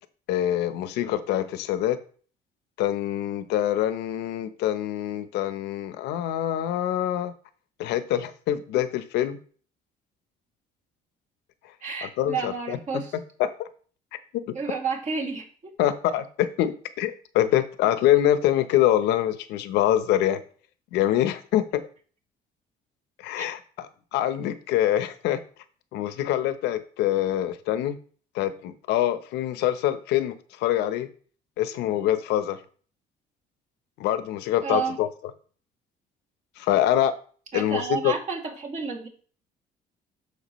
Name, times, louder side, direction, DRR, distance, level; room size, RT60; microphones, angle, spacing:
voice 1, 0.3-2.0 2.8-7.3 7.8-9.4 12.0-13.7 14.3-14.6 15.8-20.4 20.9-21.8 23.2-25.4 25.9-28.0 28.3-31.1 31.6-32.6 34.0-35.1 36.6-37.1 37.5-38.1, left 12 dB, 90° left, 12 dB, 0.8 m, -25 dB
voice 2, 11.8-13.1 14.5-15.7 23.4-23.5 34.6-35.0 37.5-39.1, right 5 dB, 45° right, 0 dB, 2.4 m, -30 dB
13.0 x 4.8 x 3.1 m, 0.43 s
cardioid pair, 110°, 17 cm